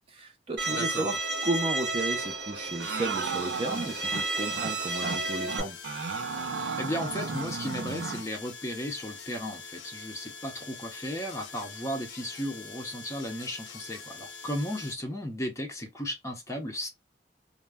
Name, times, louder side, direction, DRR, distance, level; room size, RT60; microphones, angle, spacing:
voice 1, 0.1-5.8, right 2 dB, 30° right, 0.5 m, -33 dB
Bowed string instrument, 0.6-5.6, right 3 dB, 55° right, 0.8 m, -32 dB
voice 2, 0.7-1.1 6.8-16.9, equal, 15° left, 0.5 m, -35 dB
sound 1, 2.8-15.0, left 5 dB, 85° left, 0.5 m, -44 dB
sound 2, 2.8-4.2 4.6-4.7 5.0-5.2 5.5-8.3, right 5 dB, 90° right, 0.4 m, -34 dB
2.2 x 2.0 x 3.3 m
head